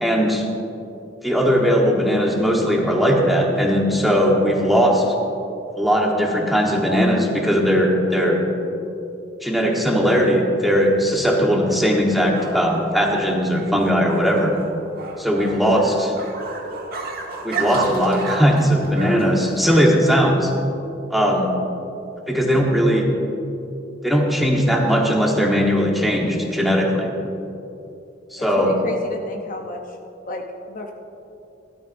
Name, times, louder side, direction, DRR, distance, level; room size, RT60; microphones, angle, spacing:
voice 1, 0.0-0.5 1.2-5.0 5.8-8.4 9.4-14.5 15.2-16.1 17.4-20.5 21.1-21.5 22.3-23.1 24.0-27.1 28.3-28.7, equal, ahead, -1 dB, 1.3 m, -19 dB
sound 1, 10.7-20.1, right 3 dB, 55° right, 1.3 m, -33 dB
voice 2, 28.4-30.0 30.3-30.9, left 2 dB, 45° left, 2 dB, 0.8 m, -31 dB
16.0 x 12.5 x 2.6 m, 2.8 s
head